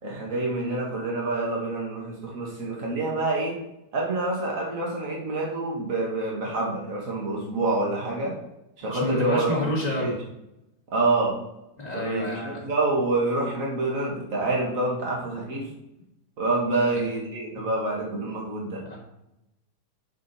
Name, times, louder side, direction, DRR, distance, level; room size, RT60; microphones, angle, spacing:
voice 1, 0.0-3.5 3.9-8.4 8.8-9.5 10.0-10.2 10.9-11.4 11.9-15.7 16.4-18.8, right 2 dB, 35° right, -2 dB, 1.5 m, -27 dB
voice 2, 8.9-10.2 11.8-12.6 16.7-17.0 17.6-17.7 18.8-19.0, left 1 dB, 15° left, -5 dB, 1.5 m, -29 dB
8.6 x 4.9 x 4.3 m, 0.87 s
omnidirectional pair, 3.6 m